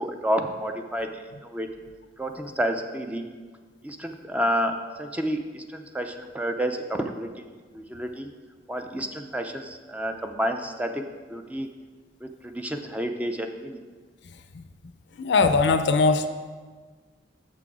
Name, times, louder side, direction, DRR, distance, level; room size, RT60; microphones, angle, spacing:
voice 1, 0.0-1.7 2.2-3.2 3.8-7.5 7.7-8.3 8.7-11.0 11.3-11.7 12.2-13.8, equal, 10° right, 5 dB, 0.4 m, -30 dB
voice 2, 15.2-16.3, left 4 dB, 70° left, 9 dB, 0.5 m, -20 dB
6.7 x 6.1 x 4.8 m, 1.5 s
head